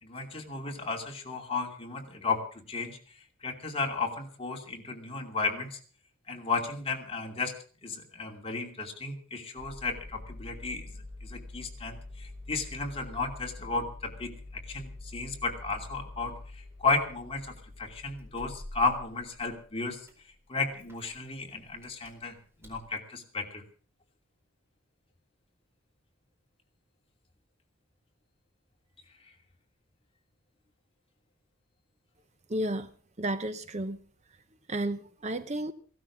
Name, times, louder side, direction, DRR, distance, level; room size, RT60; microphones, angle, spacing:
voice 1, 0.0-3.0 3.4-5.8 6.3-20.0 20.5-22.4 22.6-23.6, left 3 dB, 30° left, 2 dB, 2.7 m, -34 dB
Engine starting, 9.6-22.9, left 2 dB, 10° right, 4.4 m, -46 dB
voice 2, 32.5-32.9 33.2-34.0 34.7-35.7, right 1 dB, 35° right, 12 dB, 0.8 m, -32 dB
17.0 x 12.5 x 6.1 m, 0.42 s
head